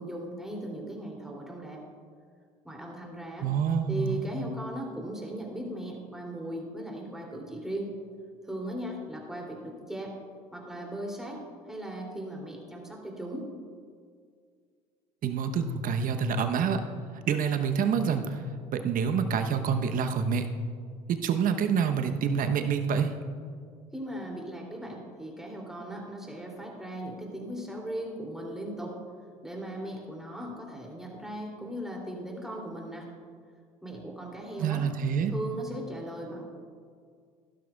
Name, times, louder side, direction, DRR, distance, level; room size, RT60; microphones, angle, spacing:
voice 1, 0.0-1.8 2.6-3.5 3.9-7.9 8.4-10.2 10.5-11.4 11.7-13.5 23.9-28.9 29.4-33.1 33.8-34.8 35.3-36.4, right 1 dB, ahead, -1 dB, 3.0 m, -38 dB
voice 2, 3.4-4.2 15.2-16.8 17.3-18.4 18.7-20.5 21.1-23.1 34.6-35.3, right 6 dB, 50° right, 8 dB, 1.0 m, -27 dB
15.5 x 12.0 x 2.4 m, 2.1 s
hypercardioid pair, 65°, 19 cm